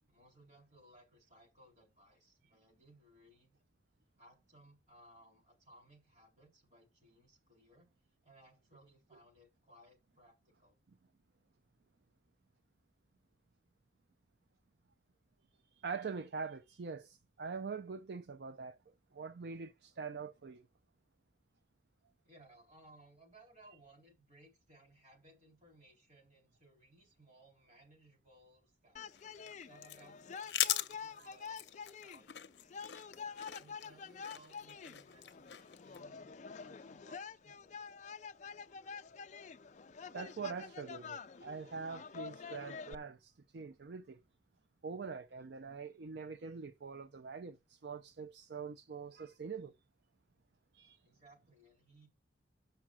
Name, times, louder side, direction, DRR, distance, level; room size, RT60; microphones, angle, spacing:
voice 1, 0.1-3.6 4.2-7.9 8.2-10.8 22.2-29.2 29.6-31.6 31.8-32.3 33.6-37.9 51.0-52.1, right 1 dB, 40° right, 4.0 m, -63 dB
voice 2, 15.7-18.8 19.1-20.7 31.2-31.3 40.1-44.2 44.8-49.7 50.7-51.0, right 5 dB, 60° right, 0.5 m, -44 dB
sound 1, 29.0-43.0, left 5 dB, 40° left, 0.4 m, -48 dB
sound 2, 29.1-36.0, left 12 dB, 65° left, 0.8 m, -41 dB
7.3 x 5.7 x 6.2 m
head